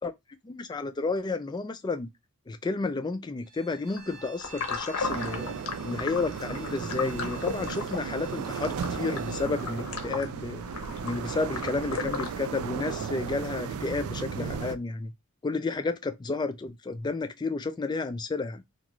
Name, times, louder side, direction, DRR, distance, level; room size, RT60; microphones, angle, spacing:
voice 1, 0.4-2.1 2.5-5.6 5.8-10.6 11.0-15.1 15.4-18.6, left 3 dB, 20° left, 0.3 m, -31 dB
Bowed string instrument, 3.4-9.5, right 5 dB, 35° right, 0.7 m, -51 dB
sound 1, 3.9-12.3, left 5 dB, 75° left, 0.7 m, -36 dB
sound 2, 5.0-14.7, right 6 dB, 70° right, 0.3 m, -35 dB
2.5 x 2.3 x 3.0 m
head